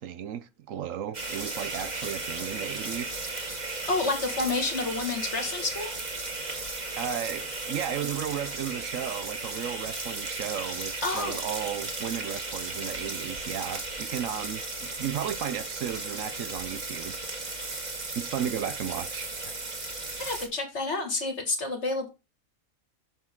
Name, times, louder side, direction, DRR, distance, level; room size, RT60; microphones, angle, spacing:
voice 1, 0.0-3.2 7.0-17.2 18.1-19.6, right 9 dB, 70° right, 1.0 m, -34 dB
sound 1, 1.1-20.5, right 2 dB, 30° right, 1.7 m, -35 dB
voice 2, 3.9-5.9 11.0-11.4 20.2-22.1, left 3 dB, 50° left, 2.3 m, -29 dB
7.1 x 6.4 x 3.7 m
omnidirectional pair, 1.5 m